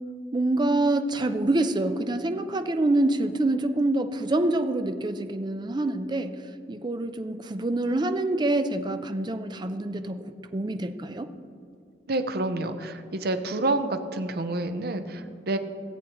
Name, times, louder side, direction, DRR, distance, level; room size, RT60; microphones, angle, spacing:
voice 1, 0.3-6.4 6.7-10.2 10.5-11.3, right 2 dB, 25° right, 9 dB, 0.5 m, -26 dB
voice 2, 12.1-15.6, right 2 dB, 60° right, 8 dB, 0.7 m, -28 dB
17.5 x 7.9 x 3.0 m, 2.4 s
head